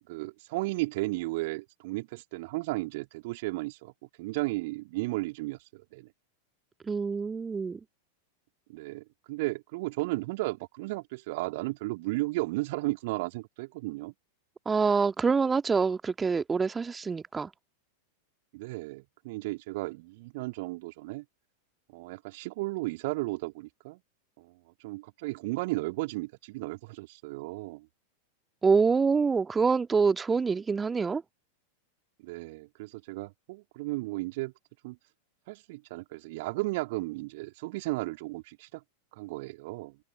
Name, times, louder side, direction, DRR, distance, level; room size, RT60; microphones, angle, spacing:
voice 1, 0.1-3.9 4.2-6.1 8.7-14.1 18.5-21.2 21.9-24.0 24.4-24.5 24.8-27.9 32.2-34.5 34.8-35.0 35.5-38.8 39.1-40.0, right 22 dB, 50° right, 3.6 m, -34 dB
voice 2, 6.9-7.8 14.7-17.5 28.6-31.2, right 5 dB, 15° right, 2.0 m, -26 dB
open air
figure-of-eight pair, 90°, 0 cm